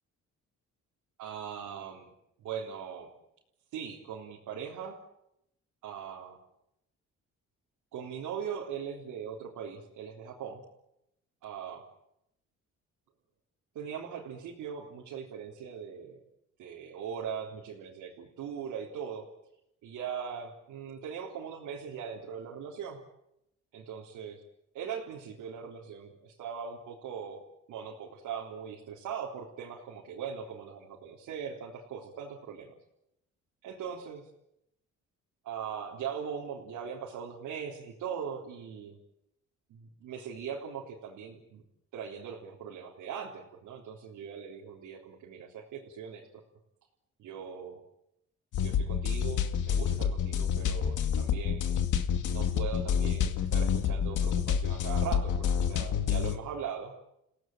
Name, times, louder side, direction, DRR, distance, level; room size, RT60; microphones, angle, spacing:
voice 1, 1.2-2.1 2.4-3.1 3.7-5.0 5.8-6.4 7.9-10.6 11.4-11.8 13.8-16.2 16.6-19.3 19.8-23.0 23.7-24.4 24.7-27.4 27.7-32.7 33.6-34.3 35.4-39.0 39.7-41.6 41.9-46.4 47.2-47.8 48.6-51.6 52.3-56.9, right 7 dB, 90° right, -2 dB, 3.7 m, -40 dB
sound 1, 48.5-56.4, left 8 dB, 85° left, 2.2 m, -28 dB
30.0 x 17.0 x 9.2 m, 0.83 s
cardioid pair, 90°, 30 cm